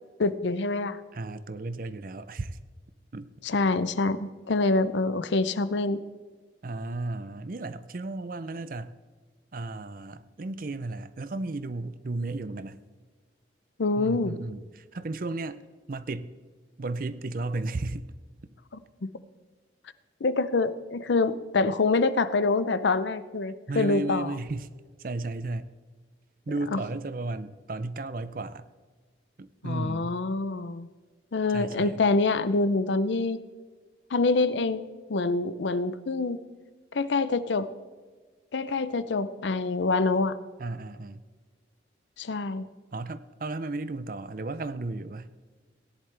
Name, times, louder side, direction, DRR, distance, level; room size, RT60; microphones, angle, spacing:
voice 1, 0.2-1.0 3.4-6.0 13.8-14.3 20.2-24.3 26.7-26.8 29.6-30.9 31.3-33.4 34.1-36.4 36.9-37.7 38.5-40.4 42.2-42.7, left 3 dB, 75° left, 0.6 m, -26 dB
voice 2, 1.1-2.6 3.1-3.3 6.6-8.9 9.5-12.8 14.0-15.6 15.9-16.3 16.8-18.0 23.7-24.7 25.0-25.7 26.5-28.6 29.4-30.2 31.5-32.0 40.6-41.2 42.9-45.3, right 2 dB, 50° right, 0.5 m, -34 dB
17.0 x 10.5 x 3.4 m
head